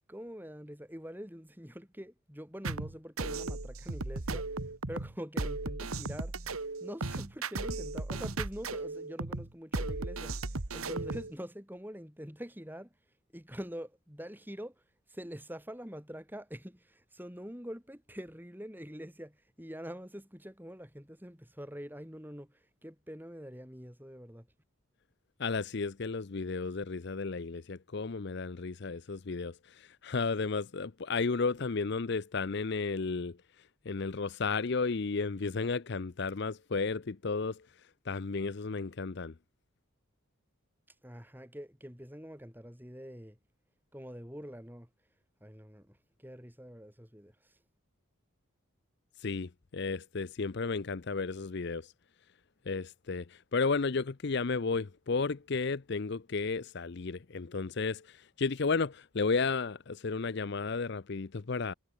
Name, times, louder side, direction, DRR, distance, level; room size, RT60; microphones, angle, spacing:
voice 1, 0.0-4.5 4.9-6.4 6.8-10.4 10.7-12.9 13.3-14.7 15.1-22.5 22.8-24.5 41.0-43.4 43.9-44.9 45.4-47.3, equal, 10° right, 4.8 m, -45 dB
sound 1, 2.6-11.3, right 3 dB, 90° right, 1.7 m, -36 dB
voice 2, 25.4-33.4 33.9-37.6 38.1-39.3 49.2-51.9 52.7-61.7, left 4 dB, 55° left, 0.6 m, -33 dB
head